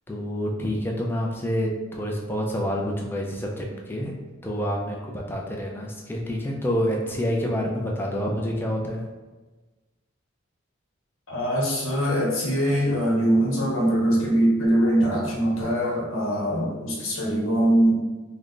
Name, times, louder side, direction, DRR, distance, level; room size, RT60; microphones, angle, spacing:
voice 1, 0.1-4.2 4.4-9.1, equal, 10° left, -1 dB, 0.4 m, -28 dB
voice 2, 11.3-17.9, right 1 dB, 85° left, -3 dB, 1.0 m, -22 dB
3.2 x 2.1 x 3.7 m, 1.2 s
head